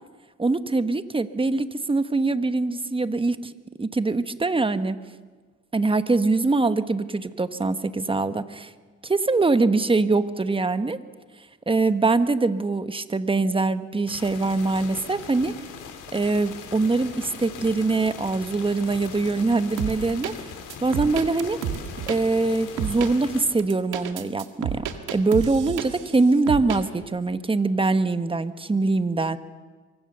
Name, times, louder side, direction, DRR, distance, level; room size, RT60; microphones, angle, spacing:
voice 1, 0.4-3.5 3.8-5.0 5.7-8.7 9.0-11.0 11.7-15.6 16.1-20.3 20.8-21.6 22.1-24.9 25.1-29.4, right 3 dB, 15° right, 11 dB, 1.2 m, -23 dB
sound 1, 14.1-23.4, left 6 dB, 85° left, 3.9 m, -40 dB
sound 2, 19.8-20.3 20.7-22.2 22.8-23.1 23.6-26.1 26.5-26.8, right 10 dB, 85° right, 1.9 m, -30 dB
24.5 x 24.0 x 6.9 m, 1.4 s
cardioid pair, 90°, 30 cm